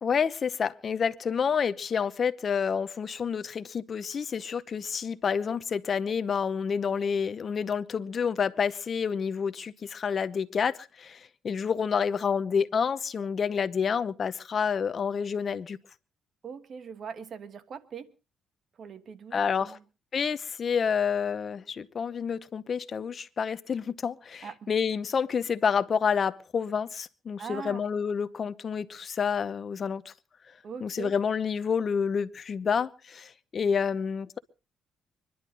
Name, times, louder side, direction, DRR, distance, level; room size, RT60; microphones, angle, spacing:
voice 1, 0.0-15.8 19.3-19.8 20.1-30.1 30.8-34.4, left 6 dB, 45° left, 0.9 m, -29 dB
voice 2, 16.4-18.1 18.8-19.8 24.4-24.7 27.4-27.9 30.6-31.1, right 6 dB, 55° right, 1.5 m, -41 dB
25.0 x 11.0 x 3.9 m
cardioid pair, 90°, 0 cm